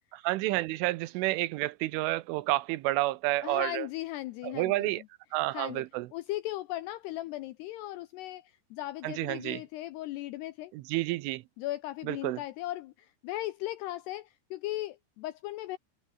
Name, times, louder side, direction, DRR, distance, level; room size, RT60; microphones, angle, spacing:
voice 1, 0.1-3.9 4.4-5.0 5.3-6.1 9.0-9.6 10.7-11.4 12.0-12.4, right 19 dB, 85° right, 3.4 m, -30 dB
voice 2, 3.4-5.0 5.5-5.8 6.1-10.7 11.6-15.8, left 16 dB, 80° left, 2.4 m, -37 dB
omnidirectional pair, 5.6 m